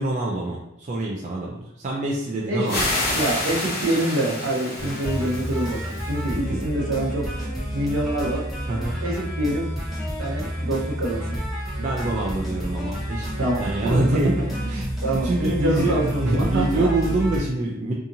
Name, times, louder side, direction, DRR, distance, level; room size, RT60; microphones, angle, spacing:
voice 1, 0.0-2.8 6.3-6.7 8.7-9.0 11.8-13.3 13.6-17.9, right 2 dB, 35° right, -3 dB, 0.3 m, -26 dB
voice 2, 2.5-2.8 3.1-7.3 7.7-8.5 9.0-9.7 10.2-11.4 13.4-14.2 14.6-16.9, right 1 dB, 65° right, -2 dB, 0.7 m, -26 dB
sound 1, 2.7-6.3, left 1 dB, 45° left, 0.7 m, -28 dB
sound 2, 4.8-17.4, equal, ahead, 0.6 m, -29 dB
2.7 x 2.5 x 2.6 m, 0.86 s
head